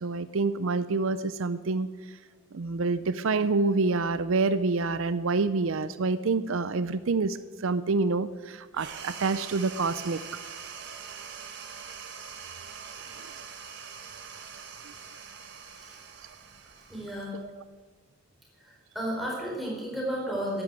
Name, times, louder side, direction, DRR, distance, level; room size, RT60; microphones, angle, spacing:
voice 1, 0.0-1.9 2.5-10.2 13.2-13.3 17.3-17.6, right 3 dB, 70° right, 14 dB, 0.6 m, -27 dB
sound 1, 8.7-17.6, right 6 dB, 55° right, 1.7 m, -43 dB
voice 2, 16.9-17.3 18.9-20.6, equal, ahead, -4 dB, 4.3 m, -32 dB
14.0 x 11.0 x 7.7 m, 1.4 s
head